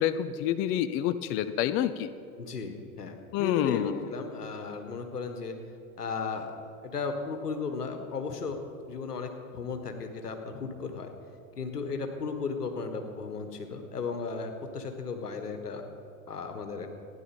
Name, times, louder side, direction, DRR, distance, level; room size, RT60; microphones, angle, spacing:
voice 1, 0.0-2.1 3.3-4.0, left 11 dB, 30° left, 12 dB, 0.5 m, -28 dB
voice 2, 2.4-5.6 6.0-6.5 6.8-8.6 8.9-11.1 11.6-15.9 16.3-16.9, left 4 dB, 85° left, 6 dB, 1.7 m, -35 dB
15.5 x 10.5 x 5.4 m, 2.4 s
figure-of-eight pair, 90°, 46 cm